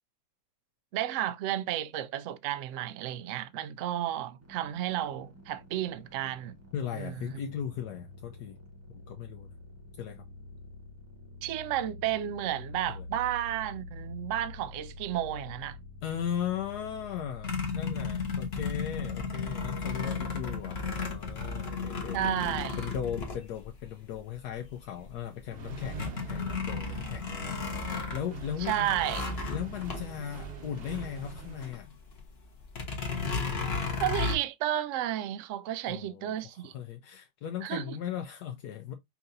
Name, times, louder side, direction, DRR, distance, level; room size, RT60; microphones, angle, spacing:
voice 1, 0.9-6.6 6.9-7.4 11.4-15.8 22.1-22.9 28.6-29.4 34.0-36.7 37.6-38.0, right 12 dB, 80° right, 0.7 m, -32 dB
sound 1, 4.4-19.1, left 3 dB, 10° right, 0.9 m, -47 dB
voice 2, 6.7-8.6 8.9-9.5 10.0-10.2 12.9-13.1 16.0-22.2 22.8-27.6 28.1-28.9 29.5-32.0 33.2-33.4 35.9-38.9, left 9 dB, 75° left, 1.1 m, -37 dB
sound 2, 17.4-24.1 24.7-24.8 25.1-31.8 32.1-32.2 32.7-34.4, left 4 dB, 45° left, 1.1 m, -34 dB
Accelerating revving vroom, 25.5-31.7, right 3 dB, 45° right, 0.8 m, -43 dB
5.6 x 2.7 x 2.5 m
omnidirectional pair, 1.8 m